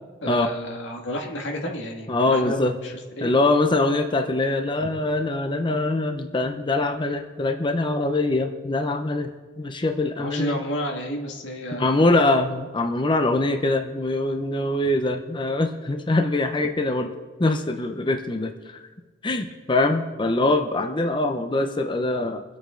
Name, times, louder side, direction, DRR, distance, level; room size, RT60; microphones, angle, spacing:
voice 1, 0.2-3.5 4.8-4.9 10.2-12.1, equal, 90° left, 1 dB, 2.0 m, -31 dB
voice 2, 2.1-2.7 3.2-9.3 9.6-10.6 11.8-17.1 17.4-18.8 19.2-22.4, left 2 dB, 25° left, 6 dB, 0.6 m, -23 dB
23.5 x 8.4 x 3.8 m, 1.4 s
head